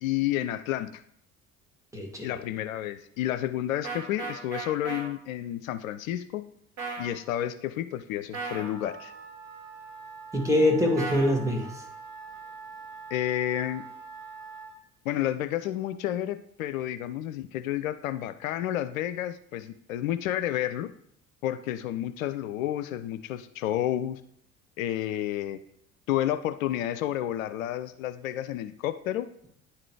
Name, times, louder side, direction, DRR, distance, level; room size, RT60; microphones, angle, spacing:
voice 1, 0.0-1.0 2.2-6.4 7.0-9.1 13.1-13.8 15.0-20.9 21.4-24.2 24.8-25.6 26.1-29.3, left 12 dB, 70° left, 11 dB, 0.5 m, -30 dB
voice 2, 1.9-2.4 10.3-11.8, left 1 dB, 5° right, 0 dB, 2.0 m, -24 dB
sound 1, 3.8-5.0 6.8-7.1 8.3-8.7 11.0-11.3, right 4 dB, 40° right, 3.0 m, -34 dB
Wind instrument woodwind instrument, 8.4-14.8, right 5 dB, 75° right, 3.3 m, -44 dB
9.8 x 3.8 x 4.7 m, 0.69 s
figure-of-eight pair, 60°, 42 cm